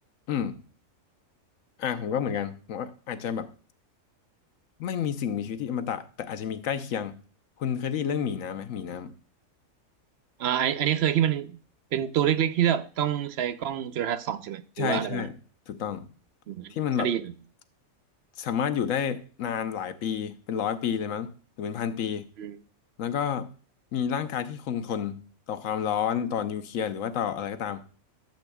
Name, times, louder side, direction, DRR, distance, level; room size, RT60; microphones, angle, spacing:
voice 1, 0.3-0.6 1.8-3.5 4.8-7.2 7.6-9.1 14.8-15.4 15.7-16.1 16.7-17.1 18.4-21.3 21.6-22.2 23.0-23.5 23.9-27.8, left 8 dB, 70° left, 1.1 m, -30 dB
voice 2, 10.4-11.6 11.9-15.3 16.5-17.3 22.4-22.6, right 10 dB, 60° right, 0.7 m, -27 dB
13.0 x 7.7 x 2.3 m
omnidirectional pair, 1.4 m